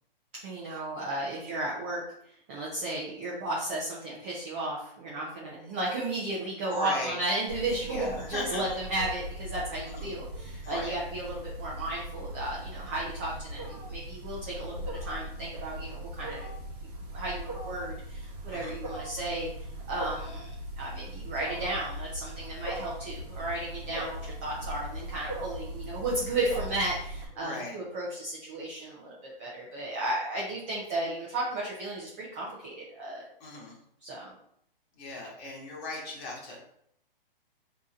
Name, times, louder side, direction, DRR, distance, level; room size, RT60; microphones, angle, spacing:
voice 1, 0.3-2.0 2.5-16.4 17.1-19.5 19.9-20.5 20.8-33.3 34.0-34.3, right 2 dB, 15° right, -4 dB, 0.4 m, -34 dB
voice 2, 6.6-7.2 7.8-8.8 9.8-10.1 10.6-11.0 18.5-18.8 27.3-27.8 33.4-33.8 34.9-36.6, left 2 dB, 20° left, -4 dB, 1.5 m, -38 dB
Wild animals, 7.5-27.2, right 1 dB, 40° right, 1.3 m, -39 dB
3.7 x 2.8 x 4.8 m, 0.72 s
hypercardioid pair, 155°, 29 cm